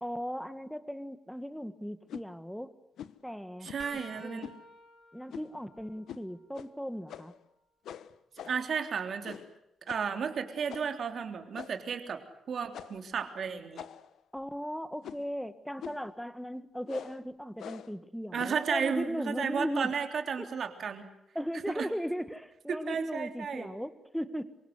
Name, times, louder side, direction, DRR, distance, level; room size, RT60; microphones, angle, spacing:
voice 1, 0.0-2.7 3.2-3.7 4.1-4.5 5.1-7.3 14.3-20.0 20.4-20.5 21.3-24.6, equal, ahead, 12 dB, 1.7 m, -37 dB
sound 1, 2.1-2.3 3.0-3.2 3.6-3.9 4.4-4.6 5.3-5.6 6.1-6.3 6.5-6.7 7.1-7.4 7.9-8.7 9.2-9.6 9.9-10.1 10.7-11.0 11.5-11.9 12.7-13.1 13.8-14.2 15.0-15.3 15.8-16.1 16.9-17.2 17.6-18.0 18.4-18.7, left 9 dB, 80° left, 1.3 m, -45 dB
voice 2, 3.6-4.5 8.4-9.4 9.9-13.8 18.3-21.1 21.7-21.9 22.7-23.7, right 6 dB, 50° right, 6 dB, 3.4 m, -33 dB
sound 2, 3.8-7.6 8.1-10.0 12.9-13.1 14.4-14.5 15.9-16.0, left 2 dB, 20° left, 6.1 m, -56 dB
27.0 x 24.5 x 8.1 m, 0.81 s
cardioid pair, 145°, 0 cm